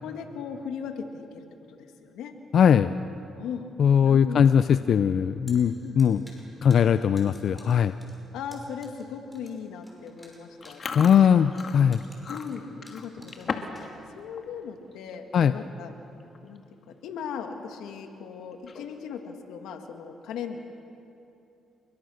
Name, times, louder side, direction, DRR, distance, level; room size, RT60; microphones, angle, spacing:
voice 1, 0.0-2.3 3.4-3.7 4.0-4.5 5.8-6.3 8.3-11.3 12.3-15.9 16.4-16.6 16.9-20.6, left 7 dB, 85° left, 5 dB, 2.2 m, -38 dB
voice 2, 2.5-2.9 3.8-6.2 6.6-7.9 11.0-12.0 15.3-15.5, left 8 dB, 60° left, 12 dB, 0.6 m, -20 dB
sound 1, 5.2-14.3, equal, ahead, 6.0 m, -54 dB
Chewing mastication, 10.6-13.9 14.2-14.5 14.9-15.2 15.9-16.0 16.2-16.6 17.0-17.1 18.5-19.1, left 5 dB, 45° left, 2.0 m, -37 dB
28.5 x 23.0 x 6.6 m, 2.8 s
cardioid pair, 90°, 0 cm